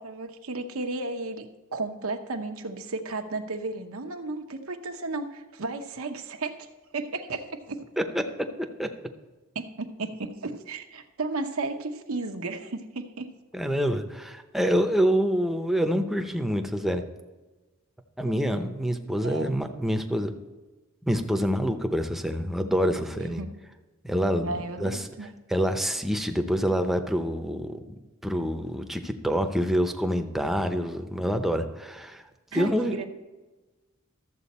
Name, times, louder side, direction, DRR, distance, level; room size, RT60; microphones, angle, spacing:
voice 1, 0.0-1.5 1.7-6.6 6.9-7.8 9.5-13.3 19.2-19.5 23.2-23.5 24.4-25.3 32.5-33.1, right 3 dB, 90° right, 5 dB, 0.9 m, -34 dB
voice 2, 13.5-17.0 18.2-20.3 21.1-23.4 24.0-27.9 28.2-32.9, equal, ahead, 5 dB, 0.7 m, -27 dB
13.0 x 7.5 x 4.2 m, 1.2 s
head